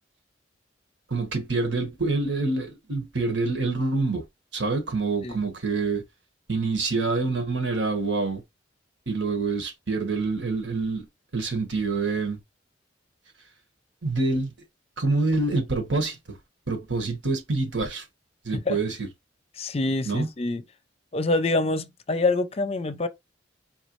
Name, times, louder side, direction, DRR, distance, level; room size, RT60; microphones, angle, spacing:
voice 1, 1.1-4.2 4.5-6.0 6.5-8.4 9.1-11.1 11.3-12.4 14.0-14.5 15.0-16.4 16.7-18.0 18.4-19.1 20.0-20.3, right 3 dB, 85° right, 1.5 m, -26 dB
voice 2, 19.6-20.6 21.1-23.1, left 2 dB, 35° left, 0.5 m, -26 dB
4.6 x 3.1 x 3.1 m
head